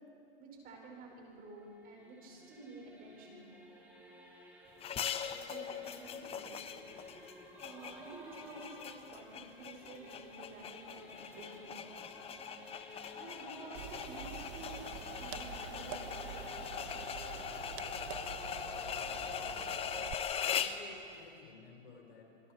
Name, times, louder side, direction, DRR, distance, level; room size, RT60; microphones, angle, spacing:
voice 1, 0.4-3.5 5.5-6.6 7.6-11.8 13.2-14.8 15.2-17.0, right 2 dB, 30° right, 0 dB, 5.6 m, -51 dB
Singing / Musical instrument, 1.0-20.1, equal, 5° right, 4.4 m, -54 dB
sound 1, 4.8-20.9, left 8 dB, 20° left, 0.8 m, -41 dB
sound 2, 13.7-20.1, right 11 dB, 50° right, 1.2 m, -47 dB
voice 2, 18.1-20.1 20.4-22.5, left 5 dB, 75° left, 2 dB, 4.7 m, -56 dB
27.5 x 22.0 x 4.6 m, 2.7 s
hypercardioid pair, 130°, 30 cm